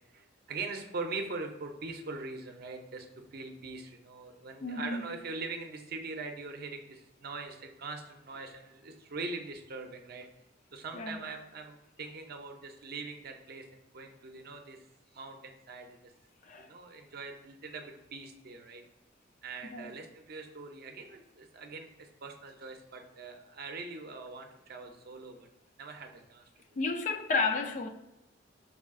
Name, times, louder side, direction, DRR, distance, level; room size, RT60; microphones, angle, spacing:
voice 1, 0.1-10.3 10.7-14.8 15.1-16.1 16.6-18.8 19.4-25.5 25.8-26.5, right 3 dB, 55° right, 0.6 m, -42 dB
voice 2, 4.6-5.1 10.9-11.3 16.4-16.7 19.6-19.9 26.8-27.9, left 3 dB, 40° left, 0.4 m, -32 dB
4.8 x 2.3 x 3.6 m
head